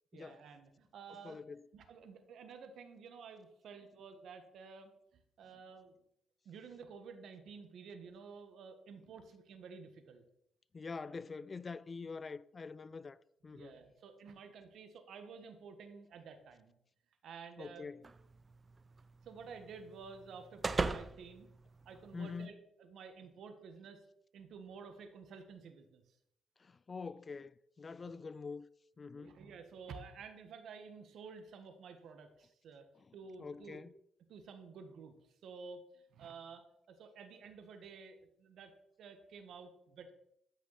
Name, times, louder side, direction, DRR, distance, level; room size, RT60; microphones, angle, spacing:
voice 1, 0.1-1.4 1.7-6.0 6.4-10.2 11.1-11.2 13.5-16.7 17.2-17.9 19.2-21.5 21.8-24.0 24.3-26.2 29.2-32.9 33.1-33.8 34.3-40.1, right 5 dB, 70° right, 1.5 m, -52 dB
voice 2, 1.2-1.6 10.7-13.2 13.4-13.7 17.6-18.0 22.1-22.5 26.6-28.7 29.0-29.4 33.4-33.9, left 4 dB, 35° left, 0.4 m, -45 dB
sound 1, 18.0-22.5, right 3 dB, 30° right, 0.6 m, -41 dB
13.5 x 6.0 x 4.2 m
cardioid pair, 90°, 0 cm